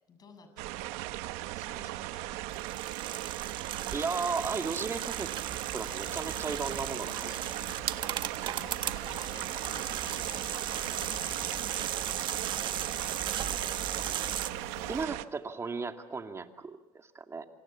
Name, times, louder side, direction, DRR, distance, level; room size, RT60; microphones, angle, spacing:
voice 1, 0.1-1.0 1.3-2.6 7.2-7.7 8.5-13.5, left 4 dB, 35° left, 7 dB, 7.5 m, -53 dB
sound 1, 0.6-15.3, right 17 dB, 75° right, 1.1 m, -38 dB
sound 2, 2.5-14.5, right 9 dB, 45° right, 1.5 m, -36 dB
voice 2, 3.9-5.3 5.7-7.3 14.9-17.5, right 4 dB, 25° right, 6 dB, 2.4 m, -35 dB
sound 3, 5.8-15.1, left 11 dB, 55° left, 1.2 m, -50 dB
27.0 x 26.0 x 7.1 m, 0.94 s
supercardioid pair, 95°, 11 cm